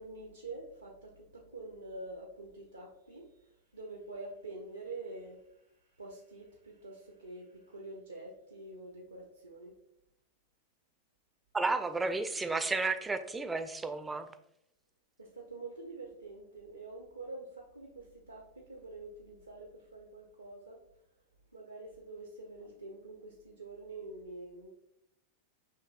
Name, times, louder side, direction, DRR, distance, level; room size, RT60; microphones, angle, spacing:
voice 1, 0.0-3.3 3.7-5.5 6.0-9.7 15.2-20.8 21.5-24.7, right 2 dB, 80° right, 0 dB, 0.6 m, -46 dB
voice 2, 11.5-14.3, right 3 dB, 10° right, 9 dB, 0.3 m, -32 dB
5.6 x 3.1 x 2.4 m, 0.78 s
figure-of-eight pair, 90°, 0 cm